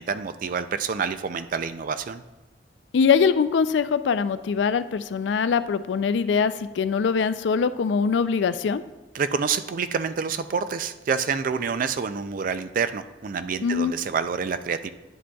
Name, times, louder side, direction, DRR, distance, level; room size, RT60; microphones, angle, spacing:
voice 1, 0.0-2.2 9.1-14.9, right 6 dB, 50° right, 11 dB, 0.4 m, -27 dB
voice 2, 2.9-8.8 13.6-13.9, left 6 dB, 85° left, 13 dB, 0.4 m, -22 dB
9.8 x 7.5 x 2.3 m, 1.0 s
head